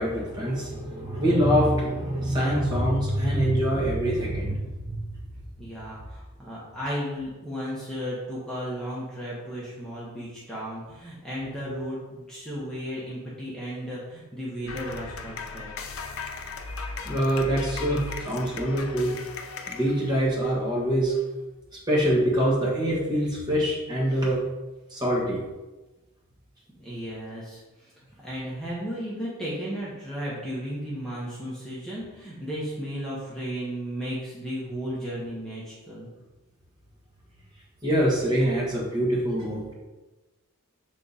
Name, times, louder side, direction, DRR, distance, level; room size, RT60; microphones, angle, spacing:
voice 1, 0.0-5.0 17.0-19.1 19.7-21.2 21.9-24.4 24.9-25.4 37.8-39.7, equal, 20° right, -4 dB, 1.4 m, -24 dB
voice 2, 5.6-15.7 26.8-27.9 28.2-36.1, equal, ahead, -8 dB, 1.1 m, -34 dB
sound 1, 14.7-20.6, left 4 dB, 70° left, 0.6 m, -37 dB
6.4 x 3.7 x 4.1 m, 1.1 s
head